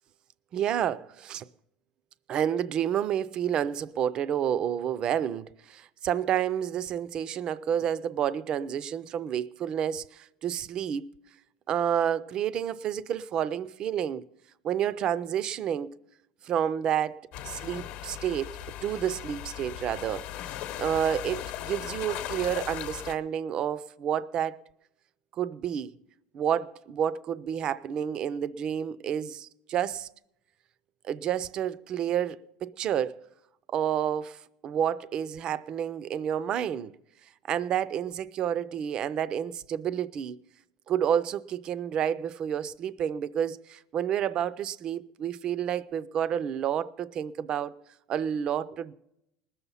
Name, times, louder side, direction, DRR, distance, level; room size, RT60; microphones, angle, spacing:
voice 1, 0.5-1.5 2.3-11.1 11.7-14.3 14.6-15.9 16.4-20.2 20.8-24.6 25.4-25.9 26.3-30.1 31.0-33.2 33.7-36.9 37.5-40.4 40.9-47.8 48.1-48.9, right 9 dB, 30° right, 0.4 m, -30 dB
sound 1, 17.3-23.1, left 12 dB, 55° left, 0.9 m, -38 dB
20.0 x 7.0 x 5.5 m
cardioid pair, 160°, 3 cm